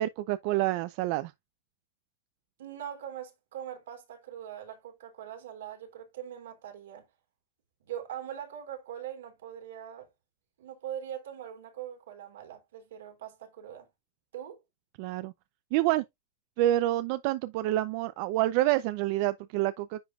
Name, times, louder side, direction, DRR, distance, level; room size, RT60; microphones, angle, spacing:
voice 1, 0.0-1.3 15.0-15.3 15.7-16.0 16.6-20.0, right 15 dB, 50° right, 0.6 m, -27 dB
voice 2, 2.6-7.1 7.8-10.1 10.6-13.9 14.3-14.6, right 10 dB, 80° right, 3.4 m, -42 dB
10.0 x 5.0 x 2.5 m
supercardioid pair, 140°, 0 cm